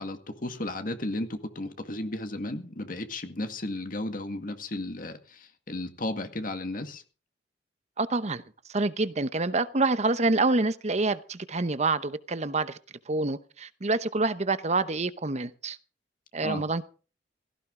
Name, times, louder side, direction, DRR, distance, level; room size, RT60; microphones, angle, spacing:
voice 1, 0.0-7.0 16.4-16.6, left 1 dB, 50° left, 1.9 m, -34 dB
voice 2, 8.0-8.4 8.7-12.8 13.1-15.8 16.3-16.9, right 3 dB, 40° right, 0.9 m, -27 dB
17.0 x 15.5 x 3.8 m
head